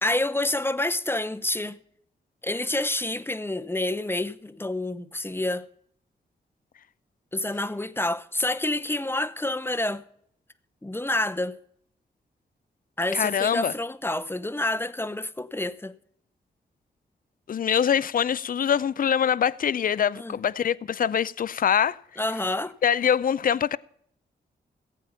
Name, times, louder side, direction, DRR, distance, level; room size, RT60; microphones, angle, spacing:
voice 1, 0.0-1.8 2.4-5.7 7.3-10.0 10.8-11.6 13.0-15.9 20.2-20.4 22.2-22.7, left 2 dB, 10° left, 0.8 m, -28 dB
voice 2, 13.1-13.7 17.5-22.0 22.8-23.8, left 8 dB, 50° left, 0.5 m, -24 dB
15.5 x 8.5 x 5.7 m
cardioid pair, 55°, 18 cm